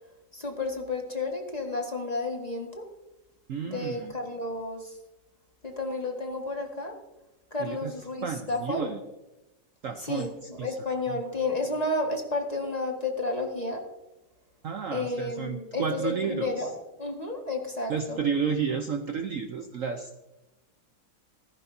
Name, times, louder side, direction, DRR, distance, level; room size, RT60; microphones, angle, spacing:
voice 1, 0.3-2.8 3.7-5.0 5.6-6.9 7.5-8.9 10.0-13.8 14.9-16.7 17.0-18.2, left 2 dB, 20° left, 2 dB, 1.7 m, -31 dB
voice 2, 3.5-4.1 7.6-9.0 9.8-10.8 11.1-11.2 14.6-16.7 17.9-20.2, right 6 dB, 60° right, 6 dB, 0.9 m, -32 dB
16.0 x 14.0 x 2.7 m, 1.0 s
omnidirectional pair, 2.0 m